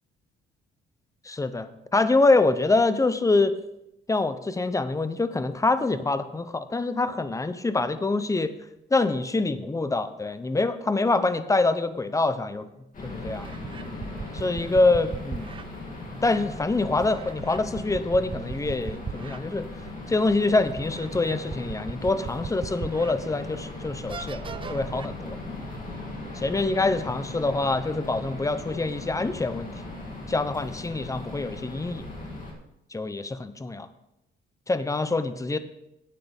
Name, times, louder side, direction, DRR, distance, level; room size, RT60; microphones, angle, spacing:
voice 1, 1.2-3.5 4.1-8.5 8.9-12.7 13.0-13.5 14.3-15.5 16.2-19.7 20.1-24.4 24.7-25.4 26.3-29.7 30.3-32.1 32.9-33.9 34.7-35.6, left 3 dB, 15° left, 12 dB, 0.7 m, -25 dB
sound 1, 12.6-12.7 13.3-15.7 17.0-19.4 19.9-20.0 20.8-23.2 23.6-23.7 24.1-25.1, right 6 dB, 25° right, 0.4 m, -38 dB
sound 2, 12.9-32.5, left 2 dB, 45° left, 2.7 m, -38 dB
12.0 x 8.5 x 3.5 m, 0.86 s
cardioid pair, 90°, 20 cm